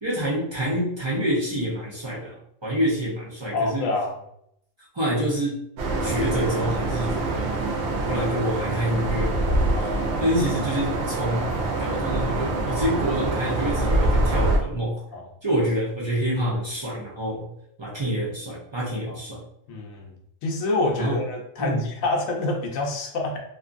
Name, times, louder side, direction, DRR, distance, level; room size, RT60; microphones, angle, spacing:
voice 1, 0.0-2.4 2.6-3.9 4.9-5.6 6.0-7.5 7.8-9.5 10.2-11.5 11.8-15.0 15.4-17.5 17.8-19.4 21.0-21.2 21.6-21.9, equal, 50° right, -6 dB, 0.3 m, -27 dB
voice 2, 3.5-4.1 9.7-10.3 15.1-15.2 19.1-19.2 19.7-20.1 20.4-23.4, left 2 dB, 75° left, 1 dB, 1.0 m, -27 dB
sound 1, 5.8-14.6, right 2 dB, 65° right, 0.7 m, -25 dB
2.6 x 2.5 x 2.4 m, 0.75 s
omnidirectional pair, 1.4 m